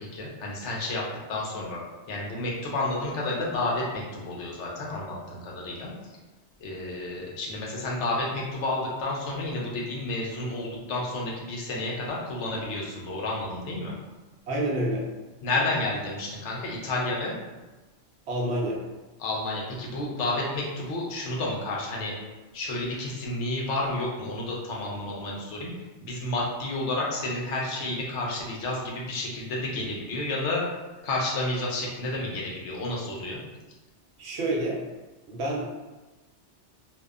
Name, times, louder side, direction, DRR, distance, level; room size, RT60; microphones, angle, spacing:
voice 1, 0.0-1.8 2.1-5.9 6.6-13.9 15.4-17.3 19.2-22.1 22.5-25.7 26.0-30.7 31.0-33.4, left 2 dB, 75° left, -3 dB, 0.9 m, -30 dB
voice 2, 14.5-15.1 18.3-18.8 34.2-34.8 35.3-35.7, right 1 dB, 70° right, -3 dB, 0.8 m, -28 dB
2.6 x 2.1 x 2.3 m, 1.2 s
omnidirectional pair, 1.2 m